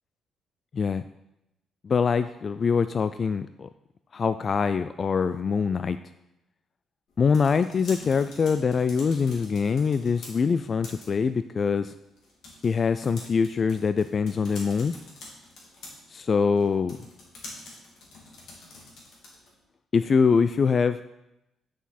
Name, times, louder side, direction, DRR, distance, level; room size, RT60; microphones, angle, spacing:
voice 1, 0.7-1.0 1.8-3.7 4.1-6.0 7.2-11.9 12.6-14.9 16.1-17.0 19.9-21.0, left 5 dB, 45° left, 12 dB, 0.3 m, -24 dB
sound 1, 7.1-19.6, left 2 dB, 70° left, 2.7 m, -47 dB
9.5 x 6.0 x 4.2 m, 0.87 s
cardioid pair, 90°, 0 cm